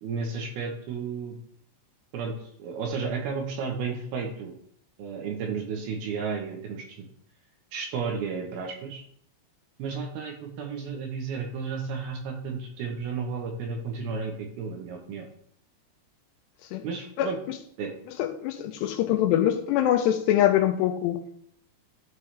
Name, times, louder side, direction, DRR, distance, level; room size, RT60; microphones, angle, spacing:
voice 1, 0.0-1.4 2.1-2.3 2.6-4.5 5.0-7.1 7.7-9.0 9.8-15.3 16.8-17.4 17.8-17.9, right 5 dB, 70° right, 2 dB, 2.6 m, -33 dB
voice 2, 18.2-21.4, left 11 dB, 80° left, 7 dB, 2.7 m, -24 dB
13.5 x 4.7 x 3.3 m, 0.67 s
omnidirectional pair, 5.1 m